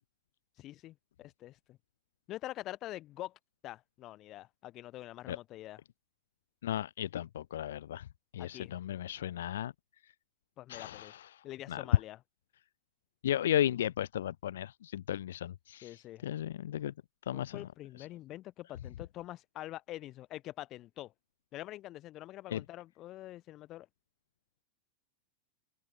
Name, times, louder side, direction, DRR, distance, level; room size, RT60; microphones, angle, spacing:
voice 1, 0.6-1.8 2.3-5.8 8.4-8.8 10.6-11.1 11.4-12.2 15.8-16.3 17.3-21.1 21.5-23.9, left 15 dB, 35° left, 2.4 m, -45 dB
voice 2, 6.6-8.0 8.3-9.7 10.7-11.2 11.7-11.8 13.2-15.9 16.2-16.9 17.3-17.6 22.5-22.6, left 11 dB, 60° left, 0.5 m, -34 dB
figure-of-eight pair, 90°, 0 cm